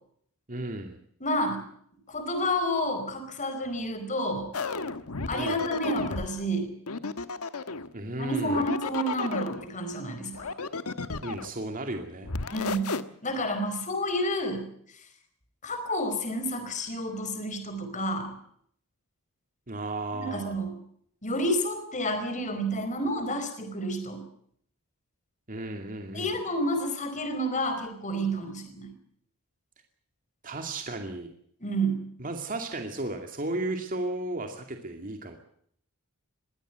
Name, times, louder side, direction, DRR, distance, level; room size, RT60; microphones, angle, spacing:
voice 1, 0.5-1.0 5.3-5.6 7.9-8.7 11.2-12.3 19.7-20.6 25.5-26.3 30.4-31.3 32.2-35.4, right 2 dB, 40° right, 4 dB, 2.4 m, -34 dB
voice 2, 1.2-1.6 2.1-4.5 5.3-6.7 8.2-10.5 12.5-13.0 13.2-14.7 15.6-18.3 20.1-20.7 21.2-24.2 26.1-28.9 31.6-32.0, equal, 35° left, 7 dB, 4.8 m, -30 dB
sound 1, 4.5-6.3 6.9-7.9 8.4-9.6 10.3-11.6 12.2-13.0, left 4 dB, 85° left, 1.3 m, -33 dB
22.5 x 16.5 x 8.1 m, 0.65 s
head